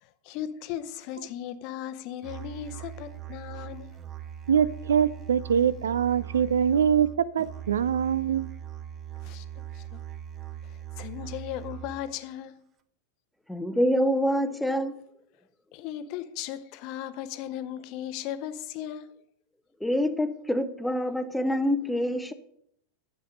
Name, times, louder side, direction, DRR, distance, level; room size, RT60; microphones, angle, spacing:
voice 1, 0.0-4.0 9.2-9.4 9.7-10.0 10.6-12.7 15.7-19.1, left 11 dB, 45° left, 0.7 m, -37 dB
Musical instrument, 2.2-12.2, right 10 dB, 30° right, 0.8 m, -40 dB
voice 2, 4.5-8.5, right 8 dB, 65° right, 0.4 m, -24 dB
voice 3, 13.5-15.0 19.8-22.3, equal, 5° left, 0.8 m, -26 dB
10.0 x 7.4 x 5.1 m
figure-of-eight pair, 90°, 0 cm